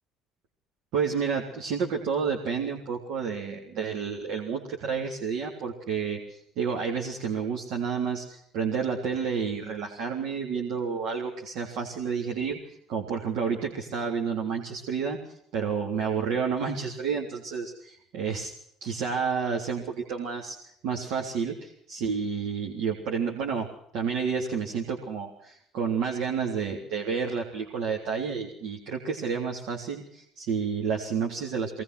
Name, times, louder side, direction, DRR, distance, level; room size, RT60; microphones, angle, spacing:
voice 1, 0.9-15.2 15.5-18.5 18.8-23.7 23.9-31.8, right 6 dB, 70° right, 0 dB, 3.5 m, -30 dB
23.0 x 20.0 x 6.2 m, 0.70 s
supercardioid pair, 70°, 0 cm